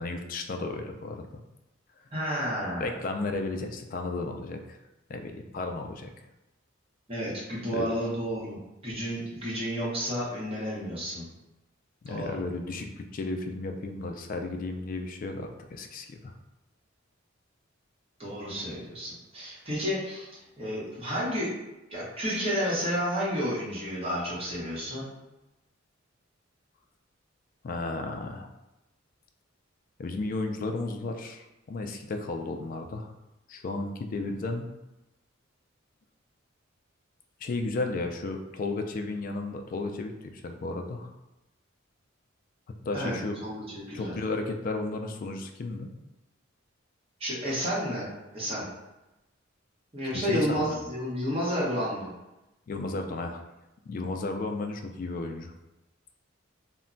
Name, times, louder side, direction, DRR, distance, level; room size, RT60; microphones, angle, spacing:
voice 1, 0.0-1.4 2.8-4.8 5.1-6.1 7.7-7.8 12.0-16.3 27.6-28.5 30.0-33.1 33.5-34.7 37.4-41.1 42.9-43.4 43.9-45.9 50.1-50.8 52.7-53.4 53.9-55.5, left 3 dB, 45° left, 5 dB, 0.3 m, -33 dB
voice 2, 2.1-2.9 7.1-11.3 12.1-12.4 18.2-21.5 21.9-25.1 42.9-43.1 43.4-44.1 47.2-48.1 48.3-48.7 49.9-52.1, equal, 30° right, -7 dB, 0.9 m, -31 dB
2.1 x 2.1 x 3.7 m, 0.98 s
head